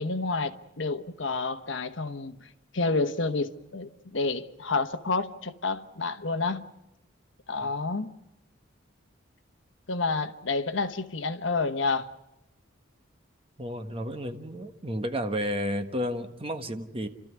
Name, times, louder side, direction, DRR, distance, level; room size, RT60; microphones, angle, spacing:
voice 1, 0.0-6.7 7.5-8.1 9.9-12.1, left 3 dB, 65° left, 1.2 m, -29 dB
voice 2, 13.6-17.1, equal, 25° right, 1.3 m, -32 dB
30.0 x 13.5 x 9.5 m
head